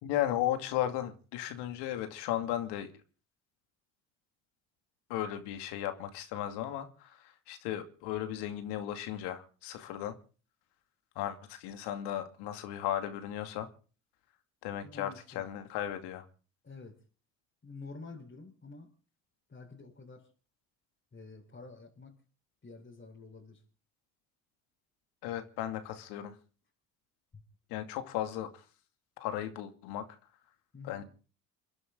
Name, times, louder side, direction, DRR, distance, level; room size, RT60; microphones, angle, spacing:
voice 1, 0.0-2.9 5.1-10.2 11.2-13.7 14.6-16.2 25.2-26.4 27.7-28.6 29.2-30.1 30.8-31.0, left 12 dB, 70° left, 2.5 m, -35 dB
voice 2, 14.8-15.5 16.6-17.0 17.6-18.9 19.5-20.3 21.1-22.1 22.6-23.6 27.3-27.4 30.7-31.0, left 3 dB, 25° left, 3.9 m, -49 dB
29.5 x 11.0 x 3.8 m
hypercardioid pair, 60°, 42 cm